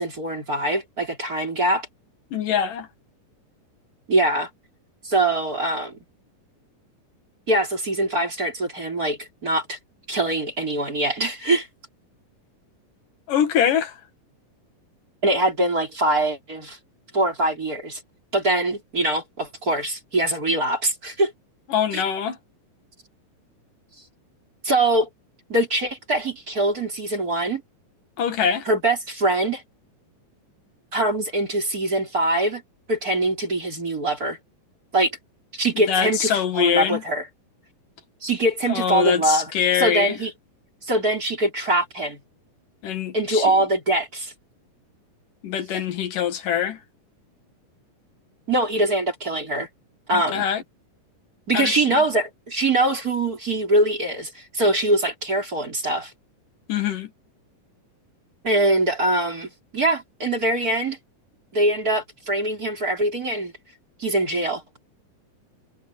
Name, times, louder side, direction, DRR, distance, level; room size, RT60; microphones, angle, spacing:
voice 1, 0.0-1.9 4.1-4.5 5.0-5.9 7.5-9.8 10.1-11.7 15.2-16.8 17.1-18.0 18.3-21.3 21.9-22.0 24.6-25.1 25.5-27.6 28.7-29.6 30.9-32.6 32.9-34.4 34.9-35.2 35.5-37.3 38.2-40.3 40.8-42.2 43.1-44.3 48.5-49.7 50.1-50.4 51.5-56.1 58.4-61.0 61.5-63.5 64.0-64.6, right 1 dB, 25° right, 4.0 m, -23 dB
voice 2, 2.3-2.9 13.3-13.9 21.7-22.4 28.2-28.7 35.9-37.0 38.7-40.2 42.8-43.5 45.4-46.8 50.1-50.6 51.5-52.0 56.7-57.1, left 8 dB, 75° left, 3.3 m, -23 dB
omnidirectional pair, 3.9 m